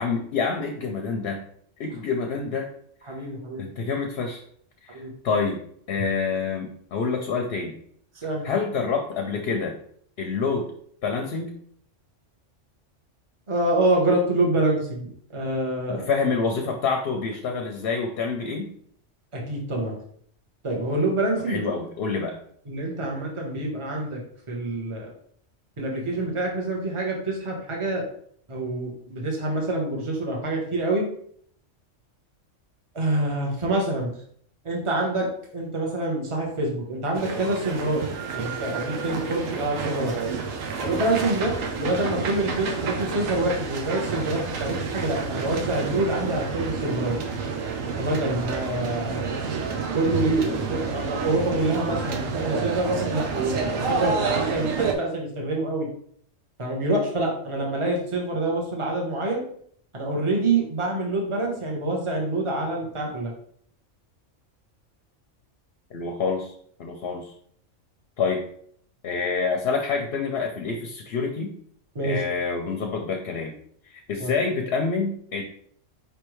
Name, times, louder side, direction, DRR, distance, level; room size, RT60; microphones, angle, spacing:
voice 1, 0.0-1.4 1.8-2.7 3.6-4.4 4.8-5.6 5.9-7.8 8.4-9.8 10.2-10.7 11.0-11.6 15.9-18.7 21.5-22.4 65.9-66.5 66.8-67.3 68.2-68.4 69.0-71.5 72.0-73.5 73.9-75.4, left 5 dB, 60° left, 4 dB, 0.8 m, -27 dB
voice 2, 3.1-3.6 4.9-5.1 8.2-8.5 13.5-16.1 19.3-20.0 20.6-21.6 22.7-24.2 24.5-25.1 25.8-28.0 28.5-31.1 32.9-34.1 34.6-35.3 35.5-38.0 38.3-40.2 40.8-47.2 48.0-49.2 49.9-55.9 56.6-59.4 59.9-63.3 71.9-72.2 74.2-74.3, right 2 dB, 25° right, -1 dB, 1.0 m, -26 dB
sound 1, 37.1-54.9, right 5 dB, 90° right, 1.1 m, -29 dB
5.0 x 3.3 x 3.1 m, 0.62 s
omnidirectional pair, 1.3 m